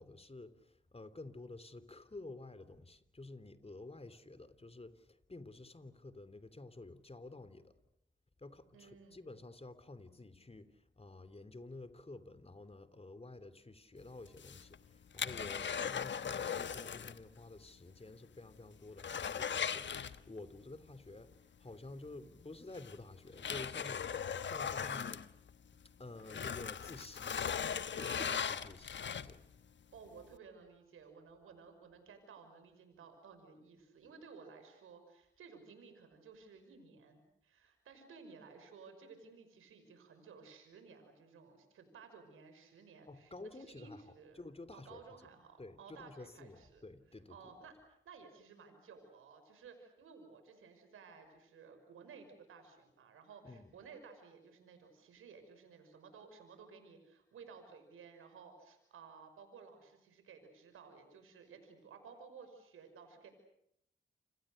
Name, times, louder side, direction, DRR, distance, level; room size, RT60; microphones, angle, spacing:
voice 1, 0.0-7.8 8.4-25.2 25.8-27.4 27.9-29.5 43.1-45.3 45.6-47.5 53.4-53.7, left 2 dB, 30° left, 13 dB, 3.2 m, -51 dB
voice 2, 8.7-9.2 15.4-15.7 24.0-24.1 28.0-28.5 29.9-44.4 44.7-46.8 47.3-63.3, right 5 dB, 85° right, 7 dB, 5.8 m, -56 dB
sound 1, 14.3-17.2 17.5-17.6 18.1-18.2 18.5-20.6 22.0-22.1 22.7-25.9 26.2-29.5 30.1-30.2, left 7 dB, 60° left, 1.2 m, -39 dB
28.5 x 27.0 x 6.6 m, 0.77 s
supercardioid pair, 40°, 21 cm